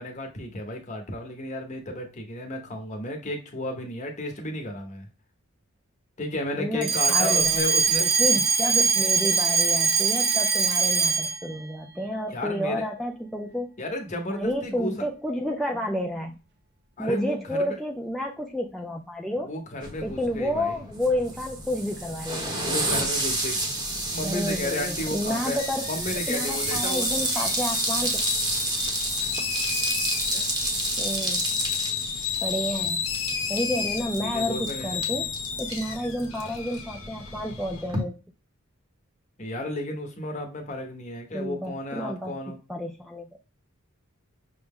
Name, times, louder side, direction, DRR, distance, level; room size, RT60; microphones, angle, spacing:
voice 1, 0.0-5.1 6.2-8.0 12.3-12.8 13.8-14.9 17.0-17.8 19.4-20.8 22.6-23.6 24.1-25.6 25.9-27.1 30.3-30.4 33.8-35.0 39.4-42.6, left 1 dB, 35° left, 3 dB, 0.9 m, -33 dB
voice 2, 6.6-7.6 8.0-13.7 14.3-16.4 17.0-19.5 20.0-22.8 24.2-25.9 26.3-28.2 31.0-31.5 32.4-33.0 33.5-35.3 35.6-38.2 41.3-43.3, equal, ahead, 0 dB, 0.3 m, -30 dB
Alarm, 6.8-11.5, right 5 dB, 55° right, 0.7 m, -22 dB
sound 1, 19.8-38.0, right 2 dB, 20° right, 0.9 m, -31 dB
sound 2, 25.6-37.8, left 6 dB, 80° left, 0.7 m, -32 dB
5.8 x 2.1 x 3.5 m, 0.32 s
head